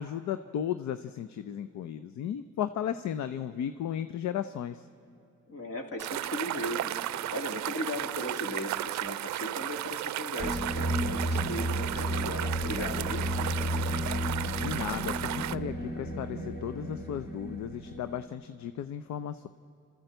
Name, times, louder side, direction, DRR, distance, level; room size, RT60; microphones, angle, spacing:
voice 1, 0.0-4.8 14.5-19.5, left 9 dB, 70° left, 11 dB, 0.6 m, -35 dB
voice 2, 5.5-6.9 7.3-13.2, left 1 dB, 50° left, 3 dB, 2.8 m, -37 dB
sound 1, 6.0-15.6, right 14 dB, 65° right, 0.5 m, -34 dB
sound 2, 10.4-18.3, equal, 30° left, 2.1 m, -33 dB
29.0 x 13.0 x 7.9 m, 2.7 s
cardioid pair, 90°, 30 cm